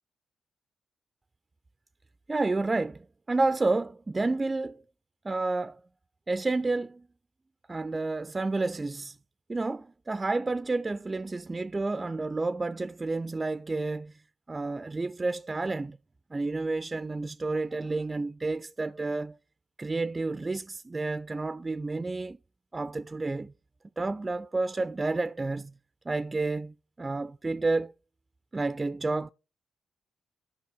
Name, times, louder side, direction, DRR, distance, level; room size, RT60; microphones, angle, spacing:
voice 1, 2.3-4.8 5.2-5.8 6.3-7.1 7.7-9.2 9.5-14.2 14.5-16.0 16.3-19.4 19.8-22.4 22.7-23.5 24.0-25.8 26.1-27.9 28.5-29.3, right 3 dB, 30° right, 0.3 m, -30 dB
11.5 x 5.4 x 3.4 m
hypercardioid pair, 40°, 0 cm